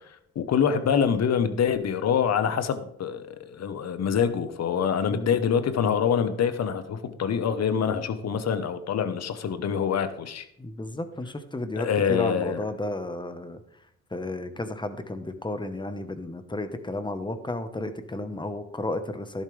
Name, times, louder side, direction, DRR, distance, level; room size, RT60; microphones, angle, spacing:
voice 1, 0.3-10.4 11.8-12.6, left 7 dB, 60° left, 10 dB, 1.2 m, -25 dB
voice 2, 5.1-5.4 10.6-13.6 14.1-19.4, left 2 dB, 15° left, 9 dB, 1.2 m, -32 dB
12.0 x 11.0 x 3.4 m, 0.73 s
cardioid pair, 90°, 30 cm